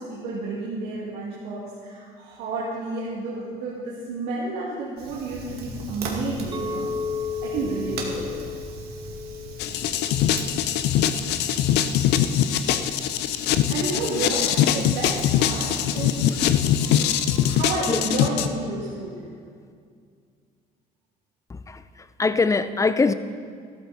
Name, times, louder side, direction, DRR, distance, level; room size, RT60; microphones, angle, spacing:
voice 1, 0.0-6.9 7.4-8.3 13.7-16.3 17.5-19.3, right 2 dB, 90° right, -7 dB, 2.4 m, -31 dB
Fire, 5.0-17.6, right 2 dB, 70° right, 2.2 m, -40 dB
Chink clink, 6.5-10.8, left 4 dB, 25° right, 0.9 m, -33 dB
sound 1, 9.6-18.5, left 10 dB, 85° left, 0.6 m, -22 dB
voice 2, 16.8-17.6 17.9-18.0 21.5-23.1, left 4 dB, 20° left, 12 dB, 0.6 m, -25 dB
13.5 x 13.5 x 4.2 m, 2.2 s
cardioid pair, 110°, 17 cm